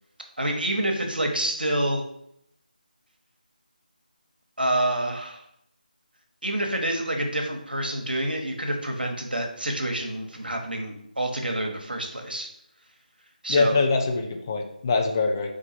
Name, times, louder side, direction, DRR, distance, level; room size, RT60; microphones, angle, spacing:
voice 1, 0.4-2.0 4.6-5.4 6.4-12.5 13.4-13.8, right 1 dB, 80° right, 3 dB, 1.1 m, -27 dB
voice 2, 13.5-15.5, left 3 dB, 25° left, 3 dB, 0.4 m, -23 dB
4.5 x 2.6 x 4.3 m, 0.75 s
figure-of-eight pair, 160°, 5 cm